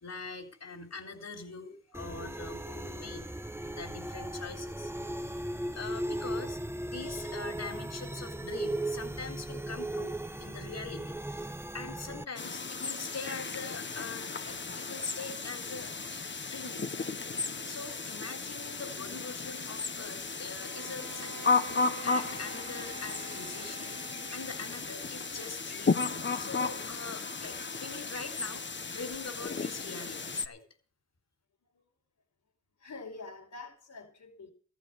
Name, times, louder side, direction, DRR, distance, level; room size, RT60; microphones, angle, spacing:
voice 1, 0.0-3.3 3.6-5.3 5.7-11.5 11.7-17.1 17.7-24.0 24.3-28.6 28.9-30.6, left 4 dB, 60° left, 3.7 m, -43 dB
sound 1, 1.9-12.2, right 1 dB, 10° right, 1.0 m, -37 dB
sound 2, 12.4-30.5, left 4 dB, 40° left, 1.1 m, -34 dB
Bowed string instrument, 20.5-24.9, right 5 dB, 60° right, 2.0 m, -47 dB
voice 2, 32.8-34.5, left 3 dB, 85° left, 5.1 m, -46 dB
14.5 x 9.4 x 6.5 m
cardioid pair, 60°, 29 cm